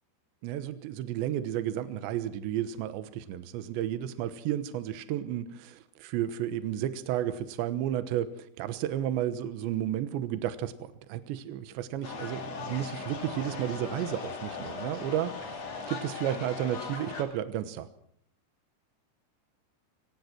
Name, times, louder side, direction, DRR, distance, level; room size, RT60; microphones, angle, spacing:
voice 1, 0.4-15.6 15.9-17.9, right 11 dB, 75° right, 11 dB, 3.4 m, -32 dB
sound 1, 12.0-17.2, left 4 dB, 40° left, 3.6 m, -38 dB
25.0 x 18.0 x 6.1 m, 0.64 s
omnidirectional pair, 5.4 m